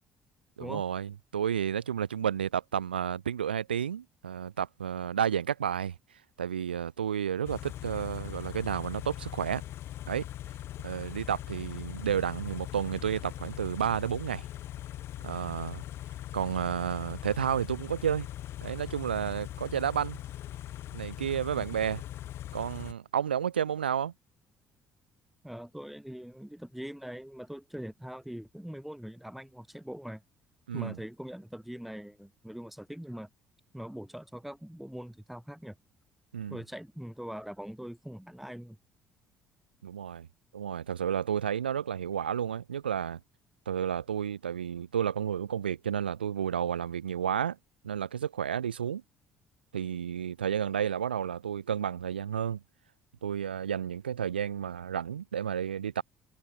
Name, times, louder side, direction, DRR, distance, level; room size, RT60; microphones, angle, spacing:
voice 1, 0.6-6.0 6.4-9.6 10.1-10.3 10.8-14.4 15.2-15.8 16.3-18.3 18.6-20.2 20.9-22.0 22.5-24.1 30.7-31.0 36.3-36.6 39.8-40.3 40.5-43.2 43.7-47.6 47.8-49.0 49.7-52.6 53.2-56.0, right 8 dB, 80° right, 0.7 m, -31 dB
Car / Idling, 7.4-22.9, left 13 dB, 50° left, 0.7 m, -41 dB
voice 2, 25.4-30.2 30.7-33.3 33.7-35.7 36.5-38.8, equal, 5° right, 1.6 m, -42 dB
figure-of-eight pair, 50°, 5 cm